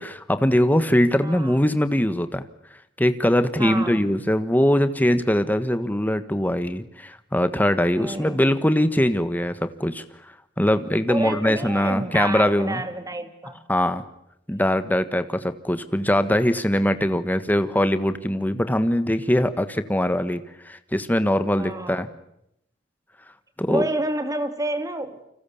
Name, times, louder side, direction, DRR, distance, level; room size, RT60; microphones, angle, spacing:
voice 1, 0.0-2.4 3.0-12.8 13.7-14.0 14.5-22.1 23.6-23.9, left 1 dB, 10° left, 10 dB, 1.4 m, -22 dB
voice 2, 1.2-1.6 3.6-4.0 8.0-8.4 11.1-13.6 21.6-22.1 23.7-25.2, right 1 dB, 20° right, 8 dB, 2.4 m, -29 dB
29.0 x 26.0 x 7.1 m, 0.79 s
head